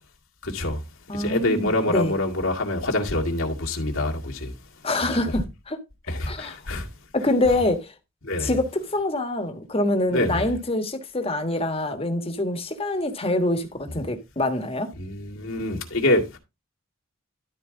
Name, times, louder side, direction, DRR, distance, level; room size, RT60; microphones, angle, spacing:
voice 1, 0.4-0.8 1.1-4.5 5.0-5.1 6.1-6.9 8.2-8.6 10.1-10.5 14.9-16.4, left 1 dB, 75° left, 2.1 m, -25 dB
voice 2, 1.1-2.1 4.8-5.8 6.3-6.6 7.1-7.9 8.4-14.9, left 2 dB, 30° left, 1.4 m, -25 dB
12.5 x 4.6 x 3.8 m
head